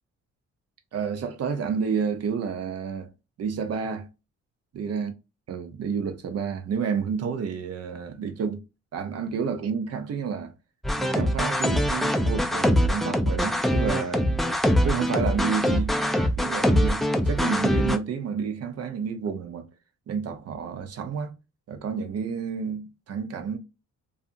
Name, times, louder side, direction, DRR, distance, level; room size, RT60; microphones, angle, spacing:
voice 1, 0.9-3.1 3.4-4.1 4.7-5.1 5.5-8.6 8.9-10.5 11.0-14.4 14.7-15.9 16.4-19.7 20.1-21.3 21.7-23.6, right 6 dB, 55° right, 0.7 m, -30 dB
sound 1, 10.8-18.0, equal, ahead, 0.3 m, -23 dB
2.7 x 2.5 x 2.4 m
cardioid pair, 105°, 30 cm